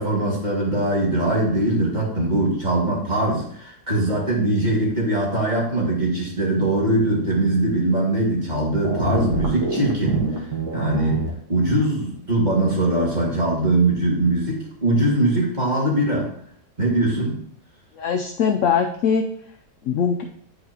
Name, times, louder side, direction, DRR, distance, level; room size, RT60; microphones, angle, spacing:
voice 1, 0.0-10.3 10.7-16.3 16.8-17.4, right 1 dB, 25° right, -4 dB, 2.0 m, -21 dB
sound 1, 8.8-11.3, right 2 dB, 75° right, 1.8 m, -26 dB
voice 2, 18.0-19.3 19.8-20.2, left 6 dB, 75° left, 5 dB, 0.7 m, -21 dB
9.6 x 4.8 x 2.8 m, 0.65 s
omnidirectional pair, 1.8 m